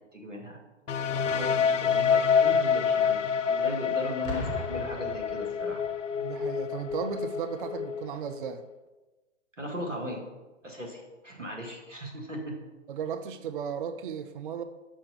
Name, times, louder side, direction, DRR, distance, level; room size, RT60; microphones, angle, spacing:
voice 1, 0.1-0.6 1.6-3.2 3.5-5.8 9.6-10.2 10.6-12.6, equal, 90° right, 0 dB, 1.7 m, -38 dB
sound 1, 0.9-8.6, left 7 dB, 85° left, 0.5 m, -27 dB
voice 2, 1.3-1.8 6.1-8.6 12.9-14.6, right 7 dB, 45° right, 9 dB, 0.5 m, -35 dB
Boom, 4.2-6.0 6.9-7.1, equal, 45° left, 1.5 m, -38 dB
6.1 x 4.3 x 5.6 m, 1.2 s
figure-of-eight pair, 120°, 36 cm